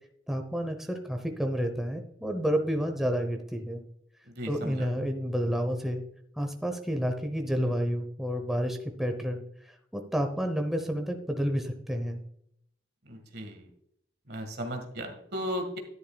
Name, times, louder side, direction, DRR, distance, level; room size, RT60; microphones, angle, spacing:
voice 1, 0.3-3.8 4.4-6.0 6.4-12.2, equal, ahead, 4 dB, 0.8 m, -30 dB
voice 2, 4.4-4.9 13.1-13.7 14.3-15.8, equal, 50° right, 5 dB, 1.7 m, -36 dB
10.5 x 10.5 x 2.3 m, 0.71 s
head